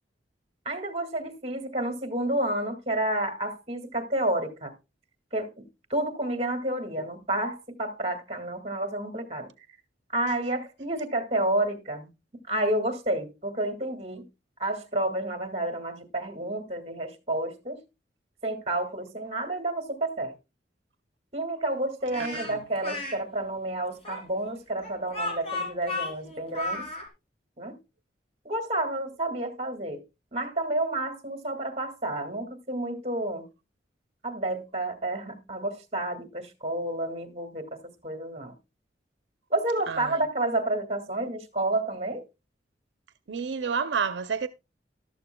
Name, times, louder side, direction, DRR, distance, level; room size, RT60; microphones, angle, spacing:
voice 1, 0.7-4.7 5.3-5.6 5.9-9.5 10.1-12.1 12.5-14.2 14.6-17.8 18.4-20.3 21.3-26.8 27.6-27.8 28.4-30.0 30.3-33.5 34.2-38.5 39.5-42.2, right 1 dB, 35° right, 1.9 m, -30 dB
Speech, 22.1-23.2 24.0-27.1, left 2 dB, 35° left, 3.1 m, -34 dB
voice 2, 39.9-40.2 43.3-44.5, right 6 dB, 85° right, 0.5 m, -30 dB
14.0 x 12.0 x 2.2 m
head